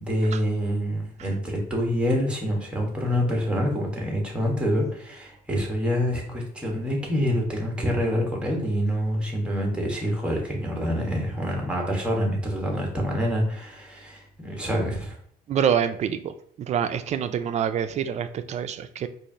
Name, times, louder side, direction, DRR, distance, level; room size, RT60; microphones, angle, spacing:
voice 1, 0.0-15.2, equal, 5° right, 0 dB, 1.2 m, -26 dB
voice 2, 15.5-16.3 16.6-19.1, right 8 dB, 40° right, 10 dB, 0.4 m, -26 dB
4.8 x 2.5 x 2.8 m, 0.63 s
cardioid pair, 110°, 17 cm